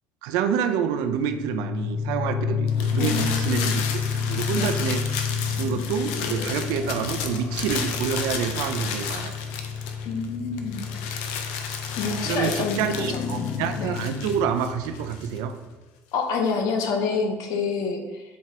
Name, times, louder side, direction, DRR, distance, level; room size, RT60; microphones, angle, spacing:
voice 1, 0.2-3.8 4.2-5.0 5.6-9.4 12.2-15.6, right 7 dB, 75° right, 8 dB, 0.5 m, -27 dB
sound 1, 1.1-15.7, left 6 dB, 45° left, 0.5 m, -30 dB
sound 2, 2.7-10.3 10.6-15.4, left 6 dB, 85° left, 0.7 m, -33 dB
voice 2, 3.0-3.7 4.6-4.7 10.0-10.8 12.0-13.4 13.8-13.9 16.1-18.2, left 4 dB, 65° left, 4 dB, 1.0 m, -27 dB
7.1 x 4.6 x 2.9 m, 1.2 s
supercardioid pair, 100°, 7 cm